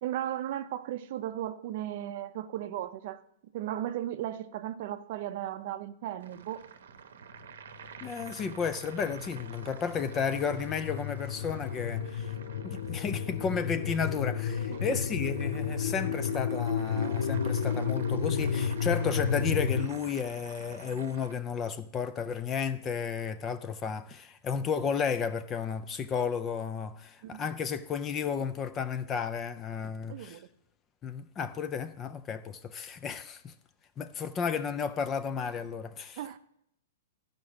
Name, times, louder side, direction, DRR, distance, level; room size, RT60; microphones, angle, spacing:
voice 1, 0.0-6.7 14.7-15.0 27.2-27.4 30.1-30.5 36.2-36.4, right 12 dB, 40° right, 0.5 m, -36 dB
sound 1, 6.2-21.3, right 7 dB, 80° right, 0.8 m, -49 dB
sound 2, 7.9-19.9, left 7 dB, 75° left, 0.6 m, -32 dB
voice 2, 8.0-12.3 12.6-30.4 31.0-33.5 34.0-36.2, left 6 dB, 15° left, 0.3 m, -33 dB
13.0 x 5.2 x 4.9 m
hypercardioid pair, 170°, 0 cm